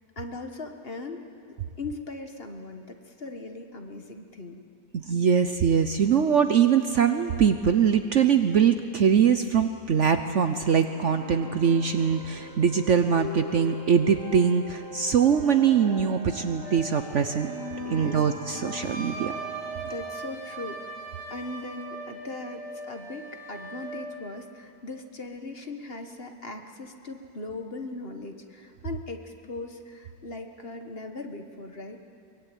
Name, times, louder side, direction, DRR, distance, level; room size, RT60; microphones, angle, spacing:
voice 1, 0.2-1.2 1.8-4.6 17.8-18.2 19.8-21.0 21.3-32.0, left 3 dB, 40° left, 5 dB, 1.6 m, -39 dB
voice 2, 4.9-17.5 17.9-19.4, right 7 dB, 55° right, 8 dB, 1.0 m, -22 dB
sound 1, 10.8-22.1, right 1 dB, 80° right, 3.4 m, -40 dB
Wind instrument woodwind instrument, 16.6-24.0, right 3 dB, ahead, 5.6 m, -40 dB
23.0 x 21.5 x 9.2 m, 2.6 s
omnidirectional pair, 1.8 m